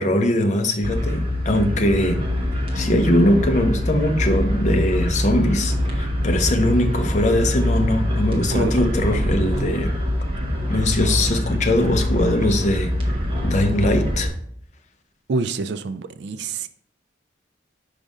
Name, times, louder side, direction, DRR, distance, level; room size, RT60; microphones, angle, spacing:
voice 1, 0.0-2.2 2.7-10.0 10.7-12.9 13.4-14.3, left 1 dB, 40° left, 0.6 m, -21 dB
sound 1, 0.8-14.3, left 1 dB, 25° right, 1.0 m, -24 dB
voice 2, 8.5-9.0 15.3-16.7, right 3 dB, 60° right, 0.3 m, -27 dB
5.3 x 4.9 x 3.6 m
head